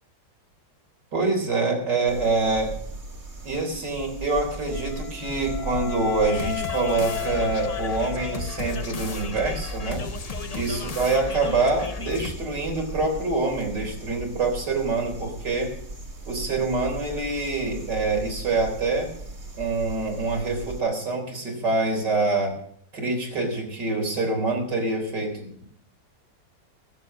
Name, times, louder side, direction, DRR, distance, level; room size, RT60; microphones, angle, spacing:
voice 1, 1.1-2.7 3.4-10.0 10.5-15.7 16.3-19.1 19.5-22.6 22.9-25.6, right 3 dB, 70° right, 2 dB, 4.5 m, -25 dB
sound 1, 2.1-20.8, right 2 dB, 35° right, 2.5 m, -38 dB
Wind instrument woodwind instrument, 4.7-8.9, left 13 dB, 60° left, 1.7 m, -34 dB
sound 2, 6.3-12.3, left 5 dB, 45° left, 0.5 m, -35 dB
20.0 x 7.6 x 6.2 m, 0.66 s
omnidirectional pair, 1.9 m